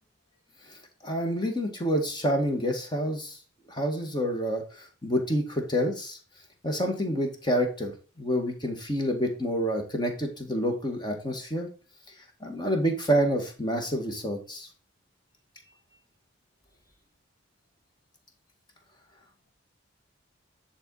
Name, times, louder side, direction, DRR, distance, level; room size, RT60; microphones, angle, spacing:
voice 1, 1.0-3.4 3.7-6.2 6.6-11.7 12.4-14.7, equal, 20° left, 3 dB, 1.9 m, -28 dB
10.5 x 4.4 x 4.0 m, 0.37 s
head